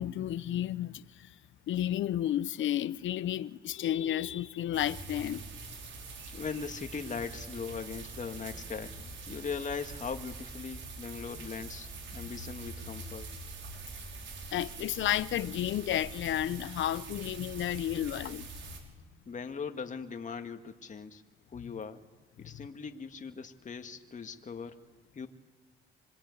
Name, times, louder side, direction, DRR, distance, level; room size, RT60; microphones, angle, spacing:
voice 1, 0.0-1.3 1.7-5.4 14.5-18.5, left 12 dB, 75° left, 1.0 m, -32 dB
sound 1, 4.7-18.8, right 3 dB, 70° right, 5.9 m, -44 dB
voice 2, 6.3-13.3 19.3-21.2 21.5-22.0 22.4-25.3, left 5 dB, 40° left, 2.0 m, -40 dB
26.5 x 22.5 x 9.8 m
cardioid pair, 90°, 20 cm